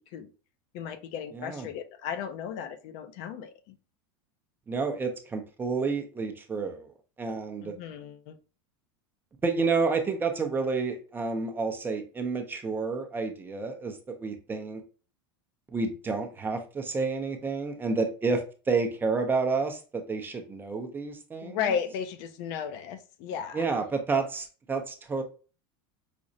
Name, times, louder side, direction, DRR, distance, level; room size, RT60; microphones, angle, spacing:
voice 1, 0.7-3.7 7.6-8.3 21.4-23.7, left 7 dB, 55° left, 0.5 m, -35 dB
voice 2, 1.3-1.7 4.7-6.9 7.2-7.7 9.4-14.8 15.7-21.7 23.5-25.2, right 4 dB, 15° right, 0.5 m, -30 dB
4.9 x 2.0 x 2.6 m
supercardioid pair, 130°, 13 cm